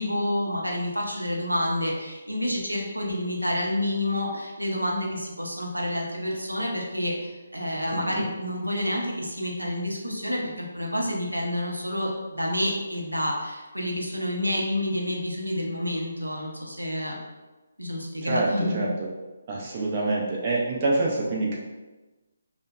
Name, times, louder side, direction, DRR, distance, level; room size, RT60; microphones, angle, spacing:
voice 1, 0.0-17.2 17.8-18.9, left 1 dB, 85° right, -1 dB, 0.5 m, -29 dB
voice 2, 7.9-8.2 18.2-19.1 19.5-21.6, right 2 dB, 30° right, -4 dB, 0.4 m, -26 dB
2.7 x 2.0 x 2.2 m, 1.2 s
figure-of-eight pair, 145°, 0 cm